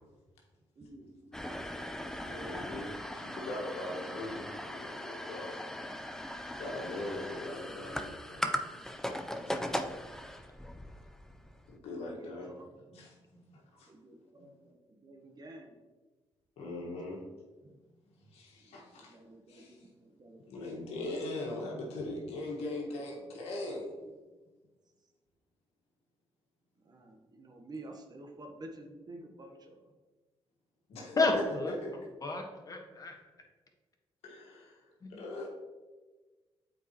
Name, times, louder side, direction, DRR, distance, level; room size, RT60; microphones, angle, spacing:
voice 1, 0.8-1.1 7.8-7.9 8.6-9.8 12.0-13.6 13.8-15.8 17.6-17.8 18.6-20.4 21.6-21.9 26.8-29.9, right 2 dB, 40° right, 4 dB, 1.0 m, -51 dB
sound 1, 1.3-11.7, equal, 5° left, 0.5 m, -39 dB
voice 2, 2.2-5.6 6.5-8.6 9.5-9.6 11.7-12.5 12.9-13.1 13.7-13.9 16.6-17.2 18.3-19.1 19.5-19.8 20.5-23.9 30.9-31.9 34.2-34.8 35.1-35.5, left 2 dB, 90° left, -1 dB, 1.5 m, -40 dB
voice 3, 31.2-31.7 32.2-33.1 35.0-35.2, left 3 dB, 35° left, 2 dB, 1.4 m, -31 dB
8.1 x 4.5 x 3.0 m, 1.3 s
cardioid pair, 70°, 10 cm